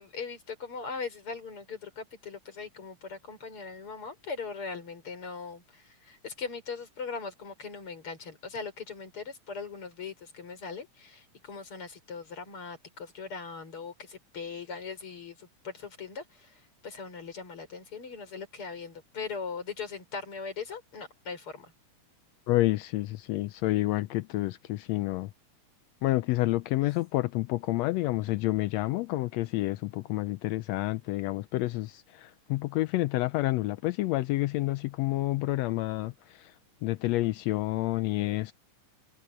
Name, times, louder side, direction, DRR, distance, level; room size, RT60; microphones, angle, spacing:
voice 1, 0.0-16.5 16.8-21.7 26.8-26.9, left 5 dB, 40° left, 6.8 m, -40 dB
voice 2, 22.5-25.3 26.0-31.9 32.5-36.1 36.8-38.5, left 17 dB, 85° left, 1.5 m, -28 dB
omnidirectional pair, 3.6 m